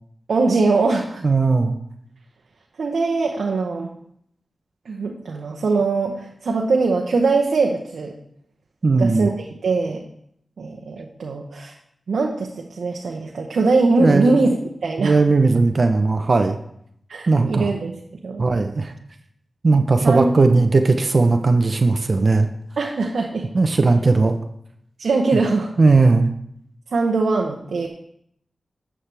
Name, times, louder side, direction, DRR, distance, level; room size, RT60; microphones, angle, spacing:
voice 1, 0.3-1.2 2.8-3.9 4.9-8.1 9.0-10.0 10.6-11.7 12.1-15.2 17.1-17.9 18.2-18.4 20.0-20.3 22.8-23.4 25.0-25.7 26.9-27.9, right 3 dB, 85° right, 1 dB, 0.8 m, -21 dB
voice 2, 1.2-1.8 8.8-9.3 14.0-14.4 15.0-16.6 17.3-17.7 18.4-18.9 19.6-22.5 23.5-24.4 25.8-26.3, right 3 dB, 55° right, 7 dB, 0.7 m, -17 dB
11.5 x 7.4 x 3.4 m, 0.72 s
cardioid pair, 45°, 0 cm